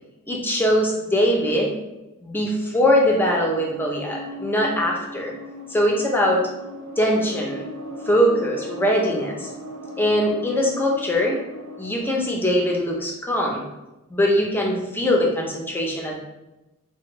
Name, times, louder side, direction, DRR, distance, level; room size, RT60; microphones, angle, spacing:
voice 1, 0.3-1.7 2.2-5.3 5.7-6.4 7.0-7.6 8.0-9.5 10.0-11.4 11.8-13.6 14.1-16.2, equal, 10° left, -1 dB, 0.5 m, -21 dB
sound 1, 2.7-12.2, equal, 80° right, 0.6 m, -38 dB
3.3 x 2.1 x 3.0 m, 0.98 s
head